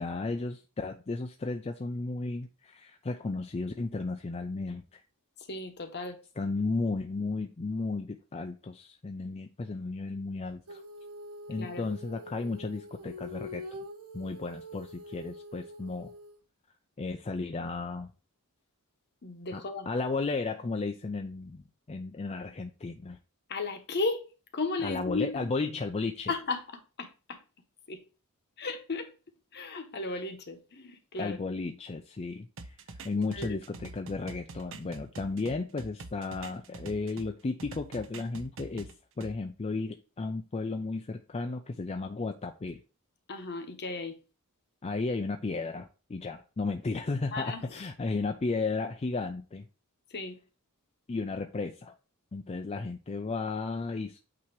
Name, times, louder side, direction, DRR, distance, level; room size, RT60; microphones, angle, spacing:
voice 1, 0.0-5.0 6.4-10.8 11.5-13.6 14.1-16.1 17.0-18.1 19.5-23.2 24.8-26.3 31.2-32.8 33.0-38.9 39.2-42.8 44.8-49.7 51.1-51.9 52.3-54.2, left 3 dB, 30° left, 0.4 m, -34 dB
voice 2, 5.5-6.2 11.6-11.9 19.2-19.9 23.5-24.2 24.5-25.5 26.3-26.6 27.0-27.4 27.9-28.0 28.6-29.1 29.5-31.4 33.1-33.6 43.3-44.2 47.3-47.8 50.1-50.4, left 3 dB, 50° left, 1.0 m, -35 dB
Female singing, 10.7-16.4, left 1 dB, 85° right, 1.3 m, -45 dB
sound 1, 32.6-37.3 37.6-39.3, right 3 dB, 60° right, 0.7 m, -45 dB
8.6 x 2.9 x 4.6 m
head